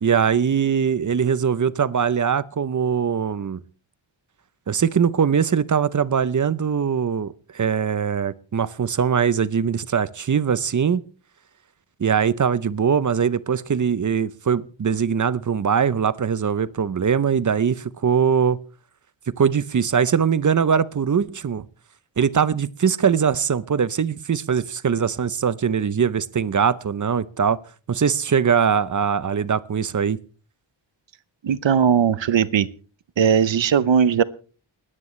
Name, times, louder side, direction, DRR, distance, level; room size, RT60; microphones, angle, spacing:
voice 1, 0.0-3.6 4.7-11.0 12.0-18.6 19.3-21.6 22.2-27.6 27.9-30.2, right 7 dB, 40° right, 0.7 m, -21 dB
voice 2, 31.4-32.7 33.2-34.2, right 7 dB, 75° right, 0.8 m, -18 dB
29.0 x 9.8 x 3.2 m
wide cardioid pair, 90°, 46 cm